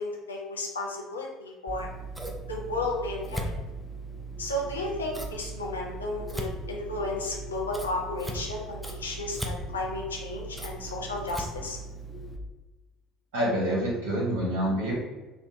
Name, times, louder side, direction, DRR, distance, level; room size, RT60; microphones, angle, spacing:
voice 1, 0.0-1.9 2.5-3.5 4.4-11.8, left 2 dB, 80° left, -1 dB, 0.3 m, -33 dB
Scissors, 1.7-12.4, right 2 dB, 5° right, 0.4 m, -38 dB
voice 2, 13.3-15.0, equal, 65° right, -6 dB, 0.7 m, -27 dB
2.5 x 2.1 x 2.5 m, 1.2 s
figure-of-eight pair, 60°, 0 cm